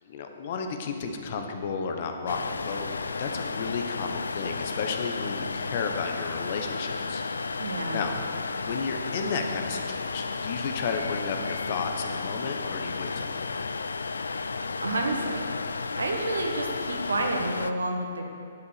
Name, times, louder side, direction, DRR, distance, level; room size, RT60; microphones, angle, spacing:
voice 1, 0.0-2.9 3.2-8.1 8.6-13.7, left 5 dB, 45° left, 5 dB, 1.2 m, -33 dB
sound 1, 2.3-17.7, left 4 dB, 70° left, 0.4 m, -33 dB
voice 2, 7.6-8.0 14.8-15.4 16.0-18.2, right 2 dB, 70° right, 2 dB, 1.6 m, -29 dB
11.0 x 8.4 x 6.8 m, 2.4 s
figure-of-eight pair, 120°, 0 cm